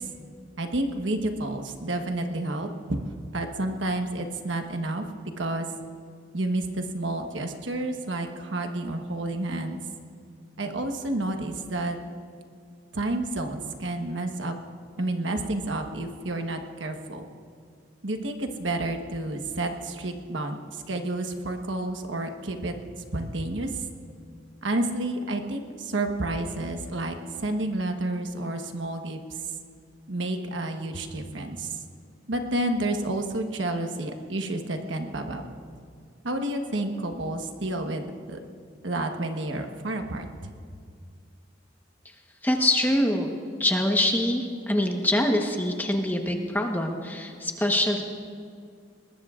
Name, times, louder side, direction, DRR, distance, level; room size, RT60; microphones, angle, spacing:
voice 1, 0.6-3.0 3.3-5.0 5.4-5.7 6.3-9.8 10.6-12.0 12.9-14.6 15.0-17.2 18.0-20.6 20.9-22.7 23.1-23.7 24.6-27.2 27.4-29.2 30.1-31.7 32.3-35.4 36.2-38.4 38.8-40.3, right 2 dB, 85° right, 4 dB, 1.2 m, -30 dB
voice 2, 42.4-43.3 43.6-48.0, left 1 dB, 10° left, 3 dB, 1.1 m, -24 dB
21.5 x 19.5 x 2.5 m, 2.3 s
head